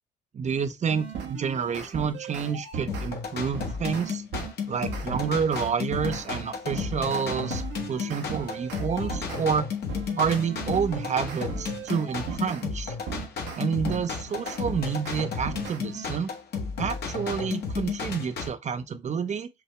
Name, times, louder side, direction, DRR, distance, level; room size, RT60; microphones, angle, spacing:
voice 1, 0.3-4.2 4.7-7.6 7.9-9.7 10.2-12.9 13.6-16.3 16.8-19.5, right 6 dB, 40° right, 0.8 m, -29 dB
sound 1, 0.9-3.1 3.5-9.5 9.9-12.6 13.1-16.1, right 6 dB, 75° right, 1.2 m, -38 dB
sound 2, 2.9-18.5, left 5 dB, 60° left, 1.5 m, -33 dB
5.9 x 2.7 x 3.3 m
hypercardioid pair, 55°, 18 cm